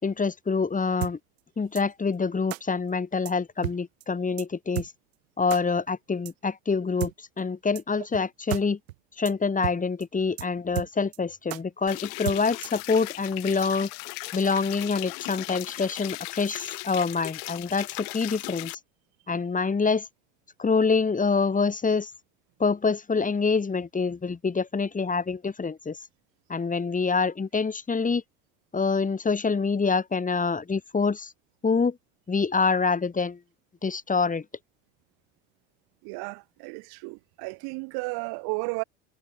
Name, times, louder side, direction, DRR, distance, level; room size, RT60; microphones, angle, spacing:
voice 1, 0.0-1.2 1.6-4.9 5.4-7.1 7.4-8.8 9.2-13.9 14.3-18.7 19.3-20.1 20.6-22.1 22.6-26.0 26.5-28.2 28.7-31.3 31.6-32.0 32.3-33.4 33.8-34.4, left 4 dB, 20° left, 3.3 m, -26 dB
sound 1, 1.0-1.1 1.7-1.8 2.5-2.6 3.2-3.3 3.6-4.0 4.4-4.5 4.7-4.9 5.5-5.6 6.2-6.3 7.0-7.1 7.7-7.8 8.1-8.2 8.5-8.6 8.9-9.0 9.2-9.3 9.6-9.8 10.0-10.1 10.4-10.5 10.7-11.2 11.5-11.6 12.2-12.8, right 17 dB, 85° right, 4.6 m, -32 dB
sound 2, 11.9-18.7, left 38 dB, 75° left, 4.8 m, -37 dB
voice 2, 36.0-38.8, right 31 dB, 70° right, 3.0 m, -33 dB
supercardioid pair, 95°, 39 cm